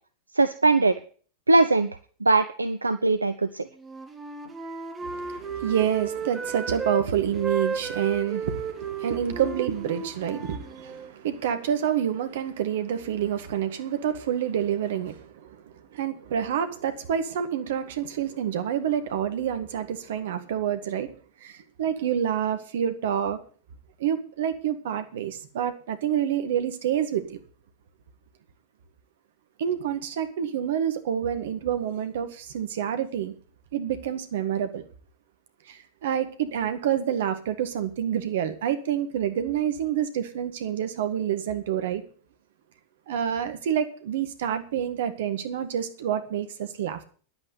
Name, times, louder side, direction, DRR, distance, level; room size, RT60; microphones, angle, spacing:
voice 1, 0.3-0.9 1.5-1.9 2.2-3.6, right 3 dB, 80° right, 11 dB, 0.7 m, -21 dB
Wind instrument woodwind instrument, 3.8-7.0 7.3-11.1, right 5 dB, 15° right, 2.1 m, -34 dB
voice 2, 5.0-21.1 21.4-23.4 24.0-27.4 29.6-33.3 33.7-34.8 35.7-42.0 43.1-47.0, right 9 dB, 55° right, 9 dB, 1.8 m, -28 dB
10.5 x 8.8 x 8.3 m, 0.42 s
figure-of-eight pair, 90°, 0 cm